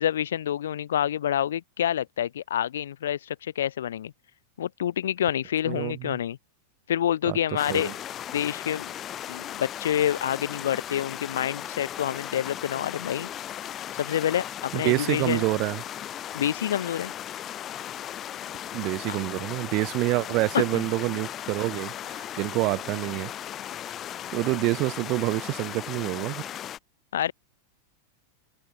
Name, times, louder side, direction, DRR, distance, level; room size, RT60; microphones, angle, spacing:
voice 1, 0.0-4.1 4.6-6.4 6.9-7.9 8.3-8.9 9.3-13.3 13.9-15.4 16.3-17.1 20.5-20.8 27.1-27.3, left 10 dB, 60° left, 0.4 m, -27 dB
voice 2, 5.6-6.2 7.2-7.4 7.7-7.9 14.7-15.8 18.7-23.3 24.3-26.4, right 23 dB, 40° right, 1.6 m, -27 dB
sound 1, 7.6-26.8, left 11 dB, 30° left, 1.5 m, -37 dB
open air
figure-of-eight pair, 90°, 0 cm